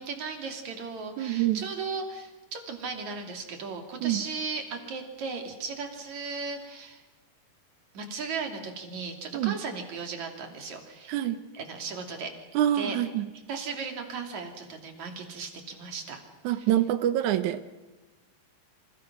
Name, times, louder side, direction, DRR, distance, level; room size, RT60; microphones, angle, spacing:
voice 1, 0.0-7.0 7.9-11.2 11.5-12.3 12.7-13.0 13.5-16.2 16.6-16.7, right 4 dB, 45° right, 4 dB, 3.8 m, -36 dB
voice 2, 1.2-1.6 4.0-4.2 9.3-9.6 11.1-11.4 12.5-13.3 16.4-17.6, right 12 dB, 80° right, 11 dB, 1.7 m, -26 dB
29.5 x 27.5 x 6.2 m, 1.1 s
omnidirectional pair, 4.8 m